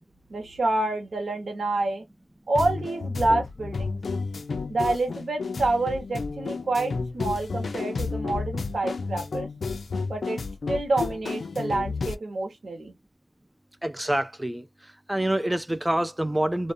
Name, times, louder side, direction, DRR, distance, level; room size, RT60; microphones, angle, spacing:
voice 1, 0.3-2.0 2.5-4.0 4.7-9.5 10.1-10.4 10.7-12.9, right 2 dB, 60° right, 0.9 m, -27 dB
sound 1, 2.5-12.1, left 4 dB, 60° left, 0.4 m, -31 dB
voice 2, 13.8-14.7 15.1-16.7, right 1 dB, 10° right, 0.3 m, -26 dB
2.5 x 2.1 x 2.5 m
wide cardioid pair, 115°, 0 cm